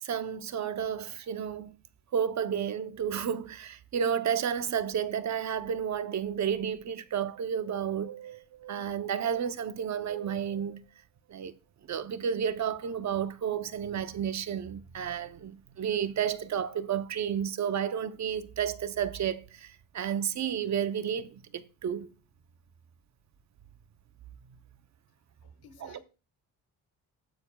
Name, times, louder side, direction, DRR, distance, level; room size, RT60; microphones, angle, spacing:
voice 1, 0.0-1.8 2.1-10.8 11.3-11.5 11.9-22.1 25.8-26.0, right 8 dB, 45° right, 0.8 m, -32 dB
voice 2, 25.4-26.0, left 6 dB, 70° left, 1.5 m, -55 dB
17.5 x 9.3 x 2.3 m
cardioid pair, 140°, 37 cm